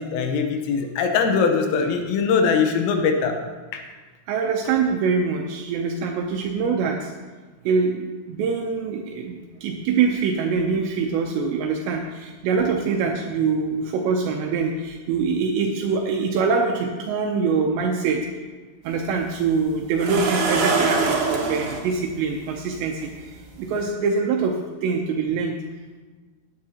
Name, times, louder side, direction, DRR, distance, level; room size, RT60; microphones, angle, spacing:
voice 1, 0.0-3.4 3.7-3.8, left 5 dB, 90° left, 4 dB, 3.7 m, -21 dB
voice 2, 4.3-7.1 7.7-18.3 18.8-25.5, right 5 dB, 80° right, 1 dB, 2.6 m, -24 dB
sound 1, 18.9-19.0 20.0-21.8 23.0-23.1 23.6-23.8, right 3 dB, 65° right, 2.1 m, -23 dB
16.0 x 9.6 x 2.9 m, 1.3 s
omnidirectional pair, 5.7 m